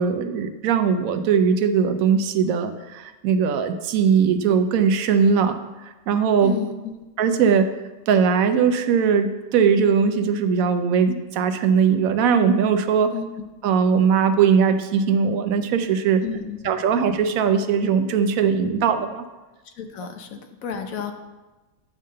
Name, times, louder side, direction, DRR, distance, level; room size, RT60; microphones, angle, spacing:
voice 1, 0.0-6.5 7.2-7.7 8.1-13.1 13.6-16.2 16.6-19.2, right 6 dB, 75° right, 9 dB, 1.1 m, -20 dB
voice 2, 6.4-6.9 13.1-13.3 16.2-16.7 19.6-21.1, left 7 dB, 75° left, 6 dB, 1.2 m, -32 dB
9.4 x 3.7 x 6.4 m, 1.1 s
omnidirectional pair, 1.5 m